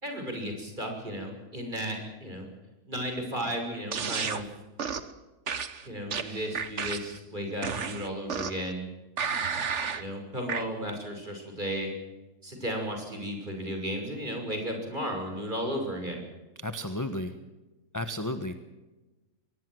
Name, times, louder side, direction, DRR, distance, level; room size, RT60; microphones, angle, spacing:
voice 1, 0.0-2.5 2.9-4.5 5.8-8.9 9.9-11.9 12.4-16.2, equal, 30° right, 3 dB, 6.3 m, -34 dB
sound 1, 3.9-4.4 4.8-5.1 5.5-7.2 7.6-8.7 9.2-10.0 10.5-10.6, right 6 dB, 50° right, 1.6 m, -32 dB
voice 2, 16.6-17.3 17.9-18.6, left 1 dB, 15° left, 9 dB, 1.1 m, -33 dB
23.5 x 19.0 x 7.8 m, 1.1 s
omnidirectional pair, 1.6 m